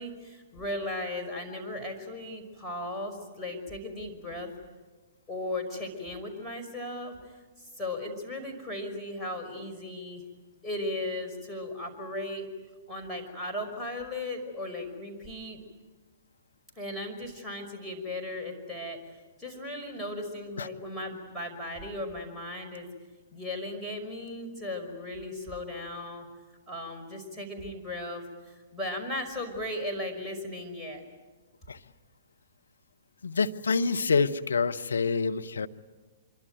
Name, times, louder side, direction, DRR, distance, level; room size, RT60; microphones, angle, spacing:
voice 1, 0.0-4.5 5.3-7.1 7.6-10.2 10.6-12.5 12.9-15.6 16.8-19.0 19.4-22.9 23.3-26.3 26.7-31.0, left 1 dB, 5° left, 0 dB, 5.5 m, -36 dB
voice 2, 33.2-35.7, left 4 dB, 70° left, 8 dB, 1.1 m, -27 dB
26.0 x 24.0 x 9.1 m, 1.3 s
figure-of-eight pair, 115°, 0 cm